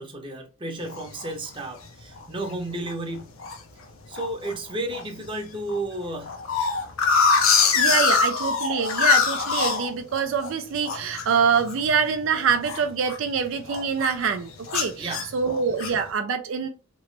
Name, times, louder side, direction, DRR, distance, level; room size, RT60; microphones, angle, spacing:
voice 1, 0.0-3.4 4.1-6.5 7.9-8.3 15.0-15.4, right 2 dB, 25° right, 0.7 m, -33 dB
sound 1, 0.9-1.3 1.8-1.9 2.2-2.5 2.9-3.6 4.1-4.5 4.9-5.0 5.3-5.4 5.7-10.5 10.8-13.4 13.7-14.2 14.7-16.1, left 5 dB, 75° left, 0.7 m, -23 dB
voice 2, 7.7-16.7, right 6 dB, 65° right, 0.4 m, -25 dB
3.0 x 2.9 x 3.1 m
head